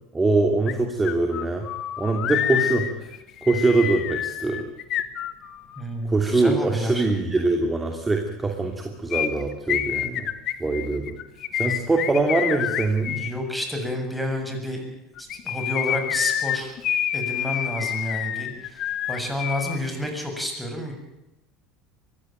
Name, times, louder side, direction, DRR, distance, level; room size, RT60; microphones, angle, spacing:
voice 1, 0.1-1.6 2.0-2.9 3.4-4.7 6.1-10.3 10.6-11.1 11.5-13.3, right 3 dB, 15° right, 3 dB, 2.9 m, -23 dB
sound 1, 0.7-0.8 1.0-5.8 9.1-13.3 15.2-19.8 20.0-20.1, left 11 dB, 50° left, 1.6 m, -28 dB
voice 2, 5.8-7.1 13.1-14.8 15.2-16.7 17.1-20.9, left 1 dB, ahead, 3 dB, 7.0 m, -30 dB
23.0 x 15.5 x 9.2 m, 0.94 s
hypercardioid pair, 85°, 0 cm